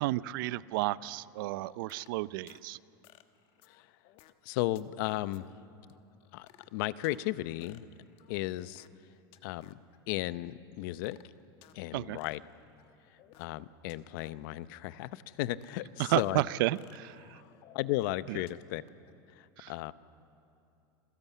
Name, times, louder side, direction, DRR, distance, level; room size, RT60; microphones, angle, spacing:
voice 1, 0.0-2.8 11.9-12.2 16.0-17.4 19.6-19.9, right 17 dB, 70° right, 19 dB, 0.5 m, -32 dB
sound 1, 1.6-2.6 3.0-4.5 4.8-5.4 5.9-6.0 6.2-7.2 7.6-9.1 9.3-10.0 10.5-11.8 12.2-13.6 13.9-14.5 15.1-16.4 16.8-18.5 18.9-19.1, left 13 dB, 50° left, 1.3 m, -60 dB
voice 2, 4.4-5.5 6.3-7.9 8.3-8.9 9.4-9.8 10.1-11.2 11.7-12.4 13.1-16.4 17.7-18.8 19.3-19.9, left 16 dB, 65° left, 16 dB, 0.7 m, -35 dB
27.5 x 15.5 x 8.3 m, 2.7 s
supercardioid pair, 125°, 12 cm